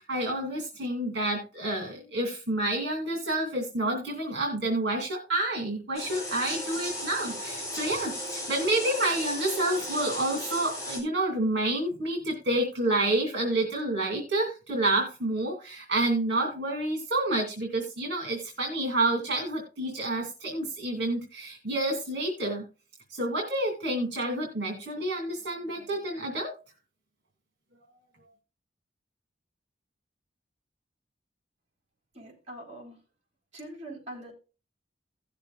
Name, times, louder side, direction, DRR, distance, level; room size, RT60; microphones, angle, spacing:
voice 1, 0.0-22.7 23.1-26.5, right 1 dB, 65° right, 1 dB, 2.5 m, -29 dB
sound 1, 6.0-11.0, left 1 dB, 20° left, 5.3 m, -36 dB
voice 2, 32.1-33.0 33.5-34.3, right 1 dB, 40° right, -2 dB, 3.9 m, -43 dB
17.5 x 6.8 x 2.5 m, 0.32 s
head